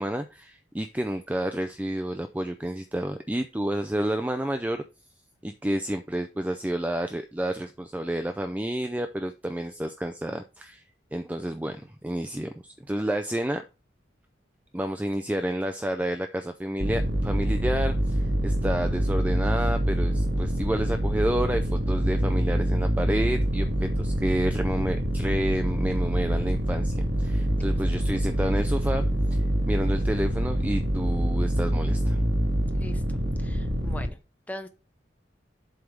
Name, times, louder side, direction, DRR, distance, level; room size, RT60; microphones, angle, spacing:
voice 1, 0.0-4.8 5.4-10.8 11.1-11.8 12.0-13.6 14.7-32.2, right 1 dB, 10° right, 8 dB, 0.4 m, -30 dB
sound 1, 16.8-34.1, right 1 dB, 75° right, 1.6 m, -25 dB
voice 2, 33.4-34.2 34.5-34.7, left 1 dB, 10° left, 8 dB, 0.8 m, -40 dB
7.9 x 3.4 x 5.2 m, 0.30 s
head